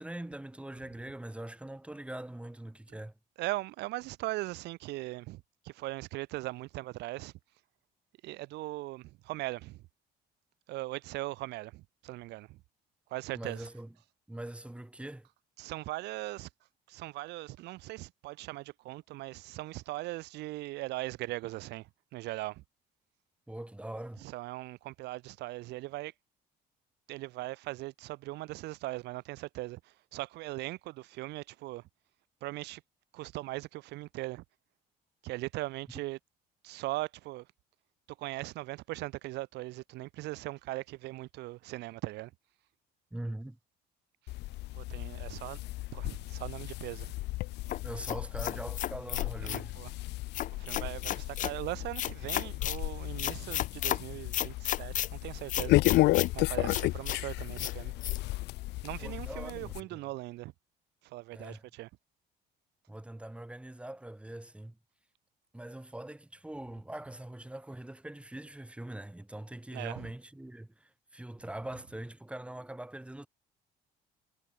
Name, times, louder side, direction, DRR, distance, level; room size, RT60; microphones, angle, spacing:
voice 1, 0.0-3.1 13.3-13.9 14.3-15.3 23.5-24.3 43.1-43.6 47.8-49.8 59.0-60.0 61.3-61.6 62.9-64.8 65.5-73.3, right 1 dB, 5° right, 3.5 m, -42 dB
voice 2, 3.4-7.3 8.2-9.8 10.7-12.6 13.1-13.7 15.6-16.5 16.9-22.6 24.2-26.1 27.1-31.8 32.4-32.8 33.1-34.4 35.2-36.2 36.6-37.5 38.2-42.3 44.7-45.6 45.9-47.1 49.4-49.9 50.5-55.8 56.3-57.9 58.8-60.5 61.0-61.9 69.7-70.1, right 19 dB, 85° right, 1.3 m, -39 dB
sound 1, 44.3-59.8, left 19 dB, 85° left, 2.0 m, -33 dB
sound 2, 47.7-49.7 50.3-51.5 52.0-52.8 53.2-54.0 54.3-55.1 55.5-56.3 56.7-57.2 57.6-57.7 58.0-58.2, left 11 dB, 50° left, 0.6 m, -33 dB
cardioid pair, 110°, 17 cm